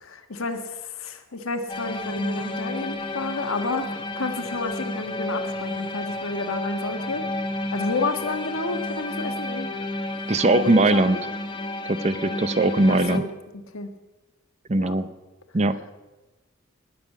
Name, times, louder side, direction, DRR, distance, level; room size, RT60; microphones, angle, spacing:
voice 1, 0.0-7.2 7.7-9.7 10.6-11.2 12.9-13.3 13.7-13.9 14.8-14.9, left 3 dB, 90° left, 7 dB, 1.5 m, -30 dB
sound 1, 1.7-13.2, left 2 dB, 25° left, 1.1 m, -31 dB
voice 2, 10.3-11.2 11.9-13.2 14.7-15.1 15.5-15.9, right 2 dB, 30° right, 14 dB, 0.6 m, -20 dB
19.5 x 7.4 x 8.4 m, 1.2 s
head